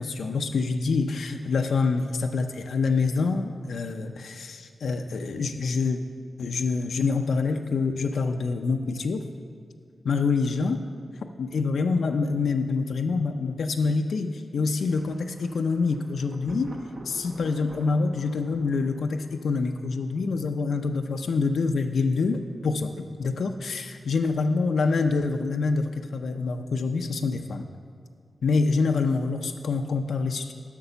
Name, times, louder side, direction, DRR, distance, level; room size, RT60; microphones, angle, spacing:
voice 1, 0.0-6.0 6.4-9.2 10.0-10.8 11.4-16.7 17.0-27.7 28.4-30.5, left 4 dB, 85° left, 5 dB, 0.4 m, -26 dB
Thunder, 14.9-20.7, right 1 dB, 60° right, 0.9 m, -47 dB
8.1 x 5.9 x 6.8 m, 2.2 s
wide cardioid pair, 150°, 0 cm